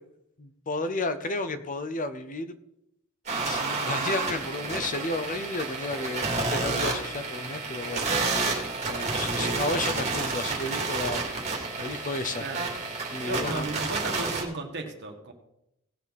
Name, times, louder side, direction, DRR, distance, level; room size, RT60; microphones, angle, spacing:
voice 1, 0.4-2.5 3.4-8.5 8.9-11.2 11.8-12.4 13.1-13.7, left 2 dB, 35° left, 11 dB, 0.7 m, -32 dB
sound 1, 3.3-14.4, right 3 dB, 30° right, 2.7 m, -30 dB
voice 2, 12.4-12.7 13.2-15.3, right 3 dB, 50° right, 3 dB, 1.9 m, -35 dB
18.0 x 6.8 x 4.1 m, 0.82 s
head